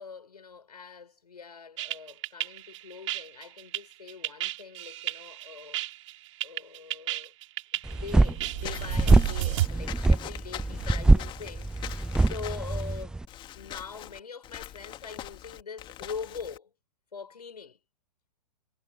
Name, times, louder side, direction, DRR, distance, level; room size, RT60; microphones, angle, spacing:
voice 1, 0.0-5.8 6.4-7.3 7.9-13.2 13.5-16.7 17.1-17.8, left 5 dB, 70° left, 6.2 m, -43 dB
sound 1, 1.8-9.7, right 15 dB, 50° right, 4.1 m, -33 dB
sound 2, 7.9-13.3, right 2 dB, 5° right, 0.6 m, -23 dB
Walk footsteps / Squeak, 8.6-16.6, left 12 dB, 25° left, 2.6 m, -42 dB
figure-of-eight pair, 110°, 21 cm